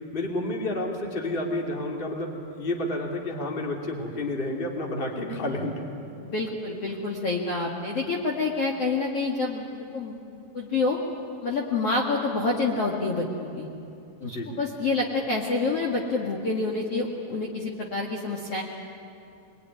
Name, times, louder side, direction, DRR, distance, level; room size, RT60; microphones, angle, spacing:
voice 1, 0.1-5.8 14.2-14.6, left 1 dB, 15° left, 0 dB, 2.3 m, -30 dB
voice 2, 6.2-9.6 9.9-10.2 10.5-11.0 11.4-13.7 14.2-18.6, left 3 dB, 45° left, -3 dB, 2.4 m, -27 dB
26.0 x 22.0 x 9.8 m, 2.7 s
omnidirectional pair, 4.6 m